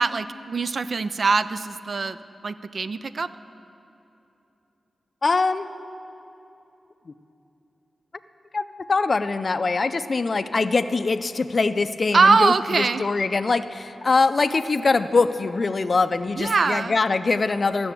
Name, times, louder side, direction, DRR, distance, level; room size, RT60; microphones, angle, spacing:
voice 1, 0.0-2.2 2.4-3.3 12.1-13.0 16.4-17.0, right 4 dB, 55° right, 14 dB, 0.3 m, -22 dB
voice 2, 5.2-5.7 7.1-7.2 8.5-17.9, left 3 dB, 45° left, 12 dB, 0.4 m, -23 dB
13.0 x 6.9 x 8.3 m, 2.9 s
wide cardioid pair, 90°, 0 cm